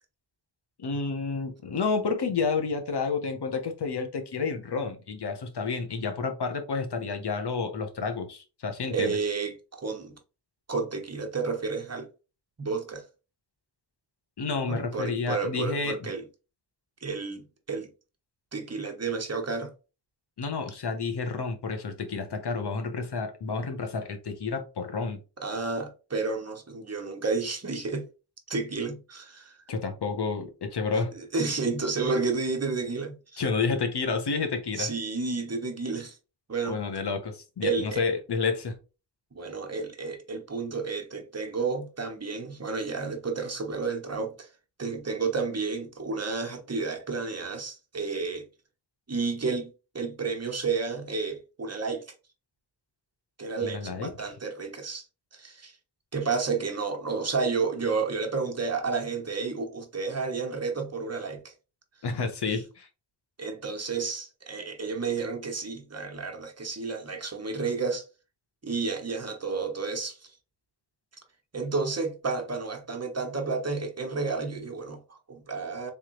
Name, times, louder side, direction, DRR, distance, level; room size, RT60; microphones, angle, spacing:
voice 1, 0.8-9.2 14.4-16.1 20.4-25.2 29.7-31.1 33.4-34.9 36.6-38.8 53.6-54.1 62.0-62.9, left 4 dB, 65° left, 1.1 m, -30 dB
voice 2, 8.9-10.2 10.7-12.1 12.6-13.0 14.7-16.3 17.0-17.9 18.5-19.7 25.4-28.1 28.5-29.6 30.9-33.4 34.8-36.2 36.5-36.8 37.6-38.0 39.3-44.5 44.8-48.4 49.1-52.0 53.4-55.0 55.3-55.8 56.1-61.5 63.4-68.1 68.6-70.3 71.5-75.9, right 4 dB, 35° right, 1.1 m, -31 dB
3.6 x 3.3 x 3.1 m
cardioid pair, 65°, 42 cm